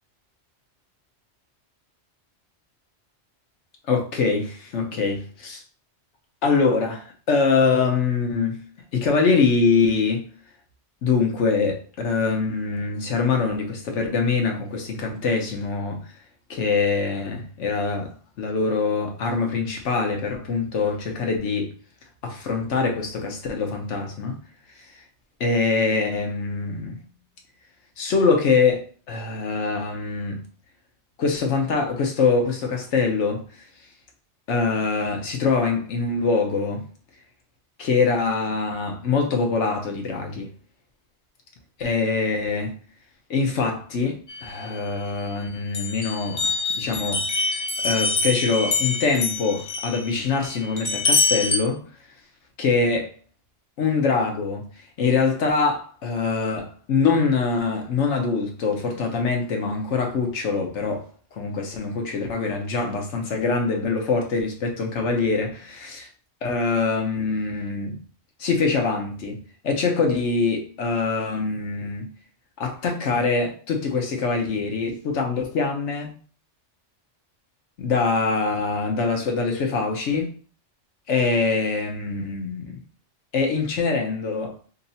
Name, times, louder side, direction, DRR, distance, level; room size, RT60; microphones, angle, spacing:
voice 1, 3.9-5.6 6.4-8.6 8.9-10.3 11.0-16.1 16.5-21.7 22.2-24.4 25.4-27.0 28.0-30.4 31.2-33.4 34.5-36.9 37.8-40.5 41.8-42.7 43.3-51.8 52.6-53.1 53.8-54.7 55.0-61.0 61.4-66.1 66.4-68.0 68.4-72.1 72.6-76.1 77.8-80.3 81.1-82.8 83.3-84.6, left 4 dB, 90° left, 1.1 m, -24 dB
sound 1, 44.3-45.3 45.7-51.6, left 3 dB, 50° left, 0.7 m, -26 dB
2.9 x 2.7 x 4.0 m
omnidirectional pair, 1.2 m